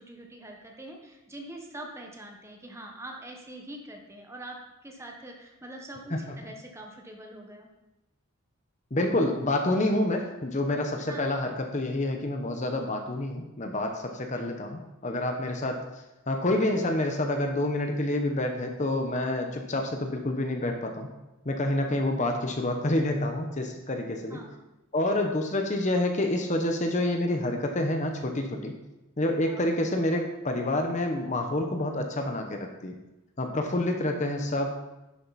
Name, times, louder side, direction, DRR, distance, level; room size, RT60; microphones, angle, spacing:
voice 1, 0.0-7.7 11.1-11.2 24.3-24.6 29.4-29.7, right 1 dB, 15° right, 1 dB, 1.2 m, -44 dB
voice 2, 8.9-15.8 16.3-21.1 21.4-24.4 24.9-28.7 29.2-33.0 33.4-34.7, left 1 dB, 35° left, 4 dB, 0.9 m, -28 dB
10.5 x 7.4 x 4.2 m, 0.99 s
head